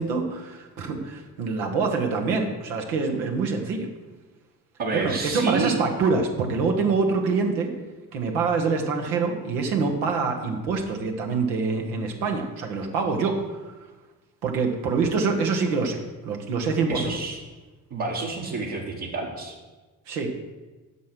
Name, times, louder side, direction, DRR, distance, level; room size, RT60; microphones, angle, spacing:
voice 1, 0.0-3.9 4.9-7.7 8.1-13.7 14.4-17.2 20.1-20.3, right 4 dB, 90° right, 3 dB, 1.2 m, -25 dB
voice 2, 4.8-5.7 16.9-17.4 17.9-19.5, right 3 dB, 65° right, -4 dB, 1.7 m, -29 dB
8.4 x 6.1 x 6.1 m, 1.2 s
hypercardioid pair, 45°, 43 cm